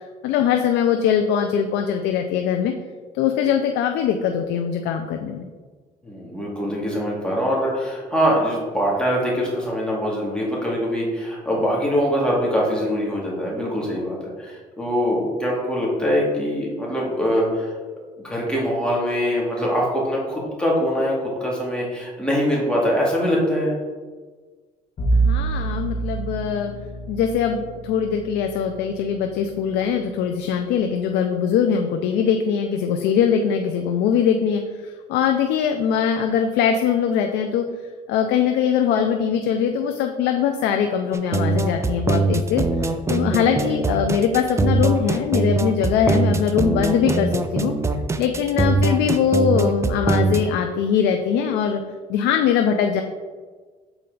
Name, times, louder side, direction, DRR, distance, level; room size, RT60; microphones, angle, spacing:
voice 1, 0.2-2.7 3.1-5.5 25.1-26.7 27.1-37.7 38.1-42.6 43.1-47.7 48.2-51.8 52.1-53.0, left 7 dB, 85° left, 5 dB, 0.5 m, -21 dB
voice 2, 6.0-17.7 18.2-21.1 21.4-23.7, equal, 5° left, -4 dB, 2.0 m, -23 dB
Bowed string instrument, 25.0-30.1, right 3 dB, 45° left, 1.6 m, -27 dB
sound 1, 41.1-50.4, right 3 dB, 15° right, 0.4 m, -22 dB
7.0 x 4.3 x 3.9 m, 1.4 s
cardioid pair, 110°, 17 cm